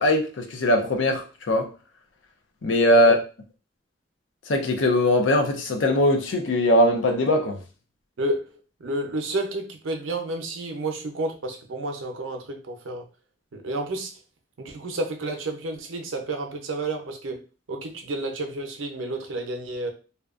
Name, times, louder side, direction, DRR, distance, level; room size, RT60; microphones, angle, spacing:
voice 1, 0.0-1.7 2.6-3.2 4.5-7.6, left 1 dB, 75° left, 0.6 m, -20 dB
voice 2, 8.2-8.5 8.8-13.1 13.5-14.1 14.6-19.9, right 2 dB, 90° right, 0.6 m, -30 dB
2.8 x 2.2 x 2.4 m
head